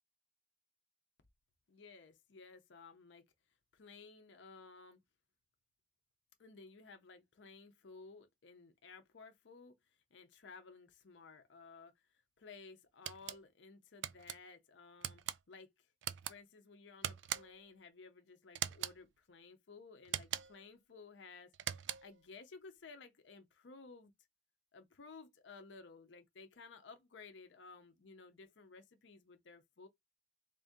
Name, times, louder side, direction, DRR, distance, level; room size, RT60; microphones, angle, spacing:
voice 1, 1.7-3.3 3.7-5.0 6.4-15.9 16.3-24.1 24.7-29.9, left 4 dB, 75° left, 0.6 m, -56 dB
sound 1, 13.0-13.4 14.0-14.4 15.0-15.4 16.0-16.3 17.0-17.6 18.5-19.0 20.0-20.6 21.5-22.2, right 11 dB, 75° right, 0.4 m, -41 dB
3.6 x 2.7 x 3.5 m
head